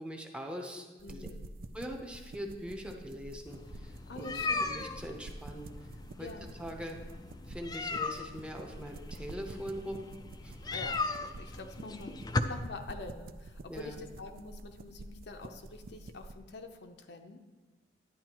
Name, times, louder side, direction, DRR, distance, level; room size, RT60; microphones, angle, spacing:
voice 1, 0.0-1.3 1.7-5.7 6.2-6.3 6.6-7.0 7.5-10.1 10.4-10.8 13.7-14.0, equal, 5° right, 2 dB, 0.7 m, -42 dB
voice 2, 1.0-1.5 4.1-4.6 6.2-6.6 10.7-11.0 11.4-17.4, left 3 dB, 65° left, 5 dB, 0.7 m, -46 dB
sound 1, 1.0-16.4, right 2 dB, 55° right, 0.4 m, -49 dB
sound 2, 3.5-12.4, left 3 dB, 20° left, 0.4 m, -38 dB
11.0 x 9.1 x 3.0 m, 1.3 s
head